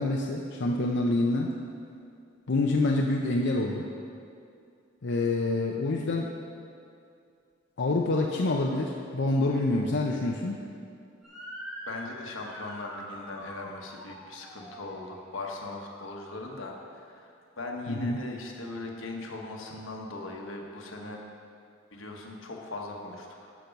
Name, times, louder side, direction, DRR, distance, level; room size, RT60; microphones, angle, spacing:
voice 1, 0.0-1.5 2.5-3.9 5.0-6.3 7.8-10.6 17.9-18.2, left 2 dB, 60° left, 0 dB, 0.6 m, -27 dB
Motor vehicle (road) / Siren, 11.2-16.5, equal, ahead, 1.6 m, -45 dB
voice 2, 11.9-21.2 21.9-23.5, left 2 dB, 90° left, 1 dB, 1.3 m, -39 dB
12.5 x 6.0 x 5.2 m, 2.4 s
head